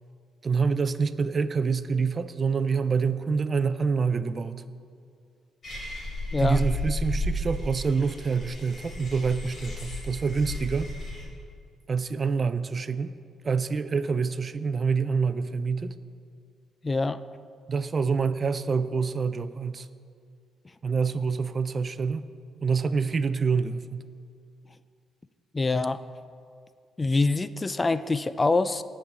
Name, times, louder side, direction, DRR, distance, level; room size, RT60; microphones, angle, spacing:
voice 1, 0.4-4.6 6.4-10.9 11.9-13.1 13.4-15.9 17.7-19.9 20.8-22.3 22.6-24.0, right 5 dB, 40° right, 13 dB, 0.4 m, -26 dB
sound 1, 5.6-11.2, left 1 dB, 50° left, 3.2 m, -33 dB
voice 2, 16.8-17.2 25.5-26.0 27.0-28.8, left 3 dB, 25° left, 13 dB, 0.4 m, -25 dB
18.5 x 7.3 x 3.7 m, 2.3 s
cardioid pair, 90°, 0 cm